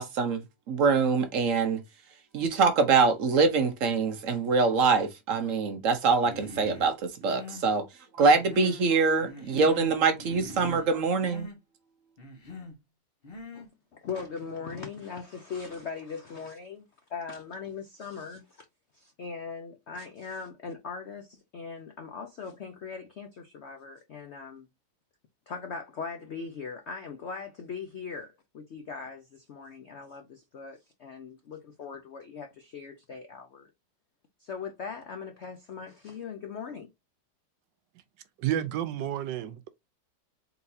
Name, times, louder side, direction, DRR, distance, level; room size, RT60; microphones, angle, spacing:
voice 1, 0.0-1.8 2.3-7.9 8.2-11.5, right 4 dB, 55° right, 1.0 m, -24 dB
Human voice, 6.2-6.9 7.2-7.7 8.2-8.9 9.2-9.9 10.2-10.9 11.2-11.6 12.2-12.8 13.2-13.7, left 2 dB, 35° left, 1.3 m, -43 dB
voice 2, 13.9-18.6 18.9-24.7 25.5-33.7 34.4-36.9, left 5 dB, 70° left, 0.6 m, -40 dB
voice 3, 38.4-39.7, right 11 dB, 80° right, 1.3 m, -30 dB
4.0 x 3.9 x 2.7 m
omnidirectional pair, 1.9 m